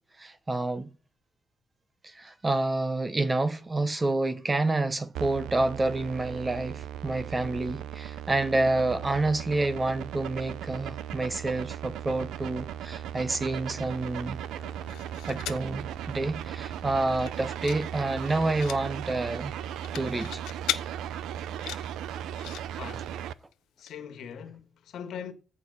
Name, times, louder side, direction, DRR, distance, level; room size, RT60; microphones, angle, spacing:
voice 1, 0.2-0.9 2.0-14.4 15.3-19.5 19.9-20.4, right 2 dB, 20° right, 1.0 m, -28 dB
sound 1, 5.1-23.3, right 10 dB, 80° right, 0.6 m, -37 dB
sound 2, 14.6-15.7 16.2-16.3 16.5-16.8 17.1-17.8 18.1-18.8 19.6-20.8 21.4-22.6 23.5-23.6 23.9-24.0, left 13 dB, 90° left, 0.9 m, -37 dB
voice 2, 22.8-23.2 23.8-25.3, left 7 dB, 70° left, 1.7 m, -41 dB
14.5 x 5.0 x 5.7 m
cardioid pair, 95°, 0 cm